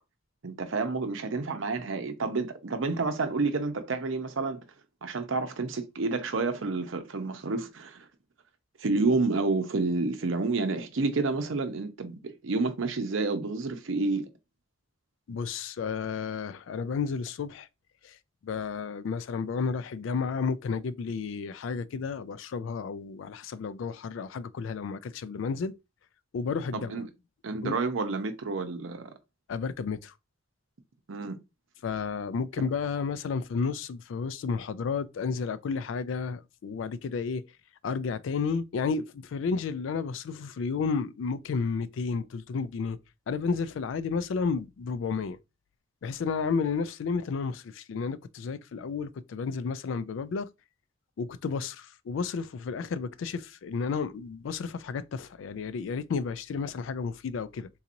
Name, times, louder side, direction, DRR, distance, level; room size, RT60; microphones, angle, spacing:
voice 1, 0.4-4.6 5.0-8.1 8.8-14.3 26.7-27.1 27.4-29.1 31.1-31.4, right 3 dB, 70° right, 0.6 m, -29 dB
voice 2, 15.3-17.7 18.0-18.2 18.4-25.7 26.3-27.0 27.6-27.8 29.5-30.1 31.8-37.4 37.8-43.0 43.3-45.4 46.0-50.5 51.2-57.7, left 5 dB, 70° left, 0.3 m, -32 dB
3.9 x 2.9 x 2.5 m
head